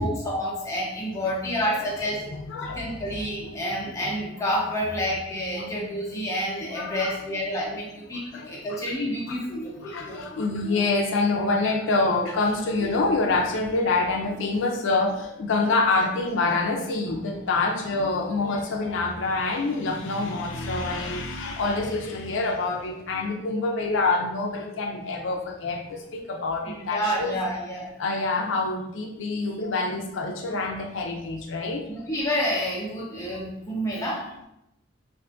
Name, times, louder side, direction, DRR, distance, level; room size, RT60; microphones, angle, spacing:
voice 1, 0.0-2.2 2.8-10.2 26.6-27.9 31.9-34.4, equal, 15° left, -5 dB, 0.8 m, -29 dB
voice 2, 1.7-2.8 5.5-5.7 6.7-7.1 8.3-8.8 9.3-9.4 9.8-27.4 28.0-31.8, left 3 dB, 75° left, 1 dB, 0.4 m, -26 dB
3.5 x 2.6 x 2.4 m, 0.84 s
head